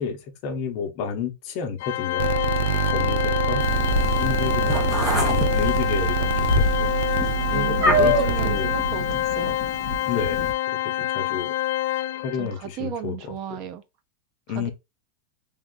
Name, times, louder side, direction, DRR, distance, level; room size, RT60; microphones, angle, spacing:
voice 1, 0.0-2.3 2.6-3.6 4.2-4.8 5.2-6.9 7.5-8.7 10.1-11.5 12.1-13.7 14.5-14.7, left 6 dB, 40° left, 0.9 m, -31 dB
Organ, 1.8-12.5, left 14 dB, 55° left, 0.3 m, -26 dB
sound 1, 2.2-9.0, right 10 dB, 85° right, 0.4 m, -26 dB
Meow, 3.6-10.5, left 1 dB, 10° right, 0.9 m, -26 dB
voice 2, 7.5-9.6 12.4-13.8 14.5-14.7, right 10 dB, 35° right, 0.5 m, -34 dB
3.6 x 2.6 x 3.7 m
supercardioid pair, 170°, 0 cm